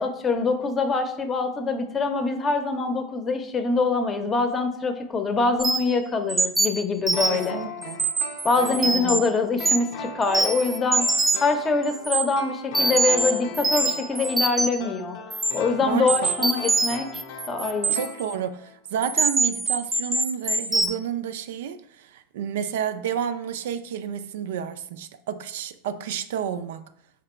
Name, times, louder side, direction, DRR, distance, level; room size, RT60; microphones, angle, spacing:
voice 1, 0.0-7.6 8.4-11.1 11.4-15.2 15.5-17.2 17.5-17.9, left 3 dB, 25° left, 0.6 m, -24 dB
sound 1, 5.6-5.9 6.3-7.4 7.8-9.2 9.6-9.9 10.2-11.5 11.8-12.2 12.7-14.8 15.3-15.5 16.1-18.3 19.0-20.9, right 3 dB, 15° right, 0.7 m, -24 dB
sound 2, 7.1-18.8 19.0-19.1, left 5 dB, 65° left, 0.6 m, -38 dB
voice 2, 7.3-8.1 8.7-9.2 15.8-16.5 17.9-26.9, right 8 dB, 75° right, 0.3 m, -31 dB
3.9 x 2.9 x 4.3 m
hypercardioid pair, 100°, 0 cm